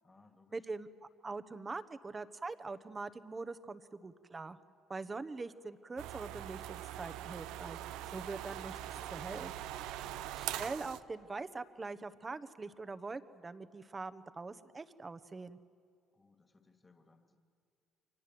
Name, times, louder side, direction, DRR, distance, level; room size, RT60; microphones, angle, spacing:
voice 1, 0.0-0.6 8.1-8.6 10.0-10.4 16.1-17.4, left 3 dB, 20° left, 6 dB, 2.4 m, -65 dB
voice 2, 0.5-0.9 1.2-4.6 4.9-7.8 8.1-8.8 9.1-9.5 10.4-15.6, right 3 dB, 25° right, 12 dB, 1.1 m, -43 dB
sound 1, 6.0-11.0, right 13 dB, 85° right, 0.8 m, -42 dB
29.5 x 24.5 x 7.8 m, 2.2 s
cardioid pair, 95°, 0 cm